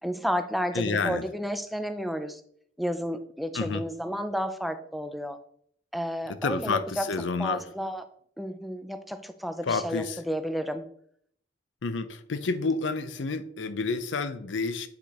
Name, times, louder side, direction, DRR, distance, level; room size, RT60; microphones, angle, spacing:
voice 1, 0.0-2.4 2.8-5.4 5.9-7.1 7.4-8.0 8.4-10.9, equal, ahead, 9 dB, 0.4 m, -31 dB
voice 2, 0.7-1.2 3.5-3.8 6.4-7.6 9.6-10.2 11.8-14.9, left 4 dB, 80° left, 12 dB, 0.6 m, -29 dB
8.2 x 5.1 x 2.9 m, 0.65 s
head